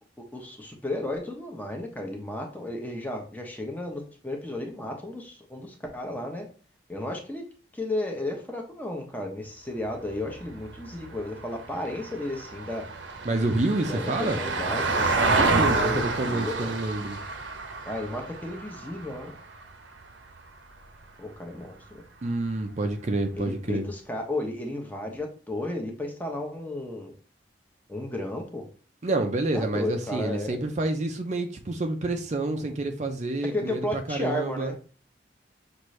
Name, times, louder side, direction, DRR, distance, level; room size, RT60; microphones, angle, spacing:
voice 1, 0.2-6.5 6.9-7.4 7.7-12.9 13.9-16.7 17.9-19.4 21.2-21.8 23.4-27.1 27.9-28.7 29.5-30.6 33.4-34.8, left 1 dB, 10° left, 2 dB, 0.8 m, -33 dB
Vehicle, 10.0-20.4 22.7-22.8, right 3 dB, 85° right, 0.8 m, -29 dB
voice 2, 13.2-14.4 15.4-17.2 22.2-23.9 29.0-34.7, right 2 dB, 40° right, 6 dB, 0.5 m, -28 dB
6.0 x 2.6 x 3.2 m, 0.40 s
head